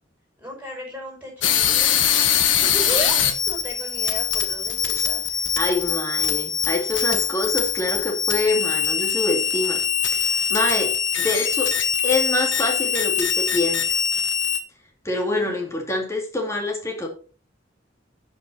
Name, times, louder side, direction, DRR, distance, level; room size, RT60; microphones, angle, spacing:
voice 1, 0.4-2.0 2.7-3.2 3.5-5.6 15.3-15.8, equal, 10° right, -1 dB, 5.2 m, -35 dB
sound 1, 1.4-14.6, left 8 dB, 85° left, 1.5 m, -22 dB
voice 2, 5.6-9.8 10.1-11.8 12.0-14.0 15.0-17.1, left 2 dB, 15° left, 1 dB, 2.5 m, -26 dB
11.0 x 5.5 x 4.4 m, 0.37 s
head